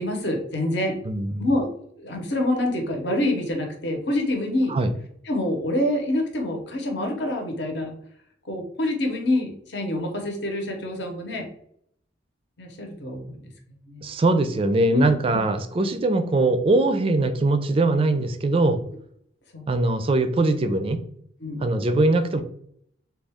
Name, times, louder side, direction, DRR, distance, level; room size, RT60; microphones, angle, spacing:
voice 1, 0.0-1.0 1.4-1.7 2.0-4.8 5.2-7.9 8.4-11.5 12.6-13.5 13.9-14.1 14.9-15.1 19.5-19.7 21.4-21.6, left 1 dB, 65° left, 2 dB, 0.9 m, -26 dB
voice 2, 1.1-1.5 4.7-4.9 14.0-18.8 19.7-21.0 21.6-22.4, right 2 dB, 30° right, 9 dB, 0.4 m, -21 dB
3.6 x 2.3 x 3.4 m, 0.67 s
head